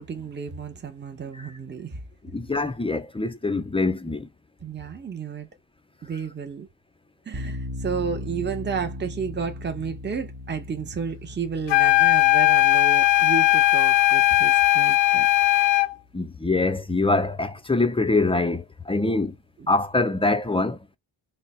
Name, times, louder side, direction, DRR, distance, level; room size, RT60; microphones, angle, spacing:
voice 1, 0.0-2.0 4.6-5.5 6.0-6.7 7.3-15.3 19.6-19.7, right 6 dB, 25° right, 0.6 m, -32 dB
voice 2, 2.3-4.3 16.1-19.4 19.7-20.8, left 3 dB, 15° left, 0.3 m, -24 dB
sound 1, 7.3-16.2, left 1 dB, 40° right, 1.0 m, -39 dB
sound 2, 11.7-15.9, left 15 dB, 70° left, 0.5 m, -18 dB
3.1 x 2.0 x 4.1 m
wide cardioid pair, 95°, 44 cm